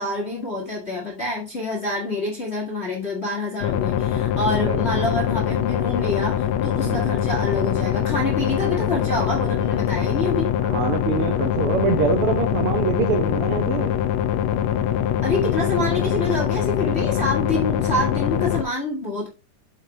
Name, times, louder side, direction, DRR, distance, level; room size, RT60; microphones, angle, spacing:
voice 1, 0.0-10.5 15.2-19.3, left 2 dB, 30° left, -1 dB, 1.3 m, -27 dB
sound 1, 3.6-18.6, left 10 dB, 80° left, 1.6 m, -23 dB
voice 2, 4.6-5.0 6.8-7.2 10.6-14.0, right 5 dB, 80° right, 6 dB, 1.2 m, -25 dB
8.0 x 5.7 x 3.3 m, 0.30 s
omnidirectional pair, 3.7 m